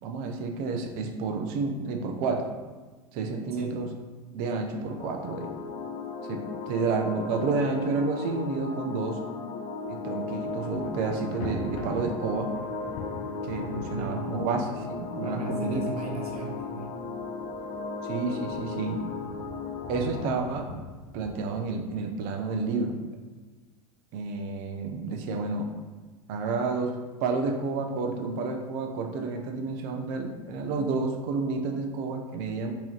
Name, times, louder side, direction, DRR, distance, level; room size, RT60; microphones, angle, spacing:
voice 1, 0.0-2.5 3.1-3.9 4.3-5.5 6.3-9.2 9.9-12.5 13.5-15.8 18.0-19.0 19.9-20.7 21.1-23.0 24.1-25.7 26.3-32.7, right 4 dB, 50° right, 4 dB, 0.6 m, -30 dB
sound 1, 4.9-20.3, left 4 dB, 30° left, 0.4 m, -36 dB
Thunder, 9.8-10.2 10.5-21.3, left 2 dB, 55° left, 0.7 m, -44 dB
voice 2, 13.6-14.3 15.2-16.9, right 2 dB, 90° right, 0 dB, 0.7 m, -37 dB
3.7 x 3.0 x 3.1 m, 1.3 s
hypercardioid pair, 95°, 19 cm